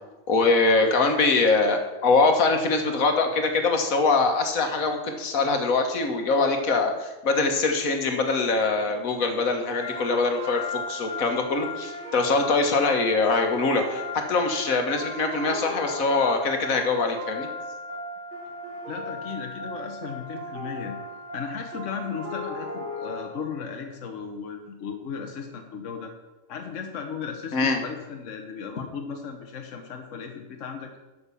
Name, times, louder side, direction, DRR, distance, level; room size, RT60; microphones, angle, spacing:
voice 1, 0.3-17.5 27.5-27.8, left 3 dB, 85° left, 5 dB, 1.7 m, -23 dB
sound 1, 9.8-23.7, left 2 dB, 40° left, 3.4 m, -36 dB
voice 2, 18.9-20.9 21.3-26.1 26.5-31.0, left 6 dB, 65° left, 4 dB, 1.3 m, -36 dB
12.0 x 5.6 x 6.9 m, 1.1 s
omnidirectional pair, 1.4 m